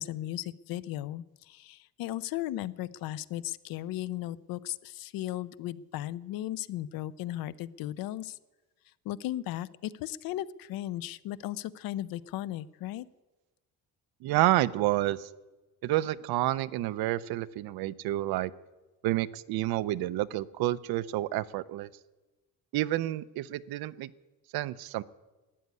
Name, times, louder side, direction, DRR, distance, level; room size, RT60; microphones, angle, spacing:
voice 1, 0.0-8.4 9.1-13.1, left 14 dB, 75° left, 17 dB, 0.6 m, -36 dB
voice 2, 14.2-15.3 15.8-18.5 19.0-21.9 22.7-24.1 24.5-25.0, right 15 dB, 90° right, 15 dB, 0.7 m, -29 dB
13.0 x 9.2 x 9.6 m, 1.2 s
cardioid pair, 170°, 35 cm